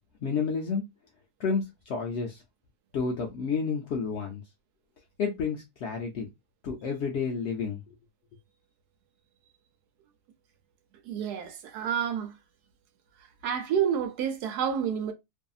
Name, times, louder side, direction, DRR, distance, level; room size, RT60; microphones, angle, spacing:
voice 1, 0.2-0.8 1.4-2.4 2.9-4.4 5.2-6.3 6.6-7.9, left 5 dB, 70° left, 0.6 m, -30 dB
voice 2, 11.0-12.4 13.4-15.1, right 8 dB, 80° right, 1.1 m, -29 dB
2.6 x 2.6 x 2.3 m
omnidirectional pair, 1.7 m